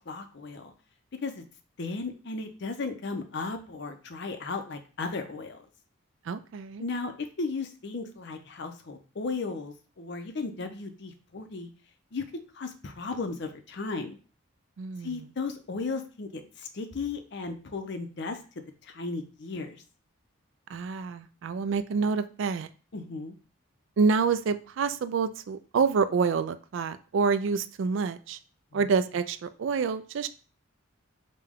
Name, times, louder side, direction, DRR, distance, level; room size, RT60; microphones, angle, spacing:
voice 1, 0.1-0.7 1.2-1.4 1.8-5.7 6.8-11.7 12.1-12.3 12.5-14.2 15.0-18.4 18.8-19.8 22.9-23.4 28.7-28.8, left 4 dB, 55° left, 7 dB, 0.5 m, -35 dB
voice 2, 6.3-6.8 14.8-15.3 20.7-22.7 24.0-28.4 28.7-30.3, right 5 dB, 60° right, 12 dB, 0.3 m, -27 dB
5.1 x 2.2 x 3.5 m, 0.37 s
head